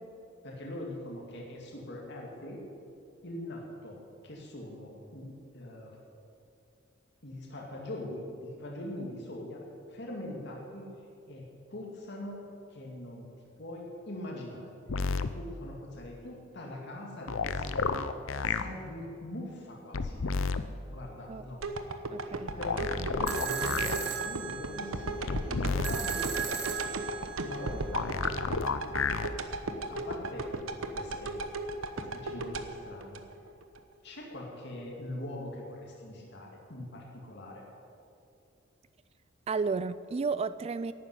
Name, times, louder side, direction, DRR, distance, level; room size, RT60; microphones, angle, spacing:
voice 1, 0.4-2.6 3.2-6.0 7.2-9.6 9.9-10.9 11.3-12.4 12.7-13.2 13.6-14.7 15.1-18.1 18.4-20.3 20.9-21.6 22.6-26.9 27.4-28.1 28.6-29.1 29.9-30.5 30.9-31.4 31.9-33.2 34.0-37.6, left 1 dB, 60° left, -2 dB, 2.4 m, -42 dB
sound 1, 14.9-15.3 17.3-18.6 19.9-20.6 22.6-24.0 25.3-26.0 27.9-29.3 30.6-30.7, left 4 dB, 80° left, 0.7 m, -31 dB
sound 2, 21.6-33.8 34.2-34.3, right 2 dB, 90° right, 1.0 m, -36 dB
voice 2, 22.1-22.5 23.0-23.1 39.5-40.9, right 4 dB, 30° right, 15 dB, 0.3 m, -32 dB
sound 3, 23.3-28.3, right 7 dB, 55° right, 1.3 m, -37 dB
12.0 x 9.3 x 9.6 m, 2.5 s
head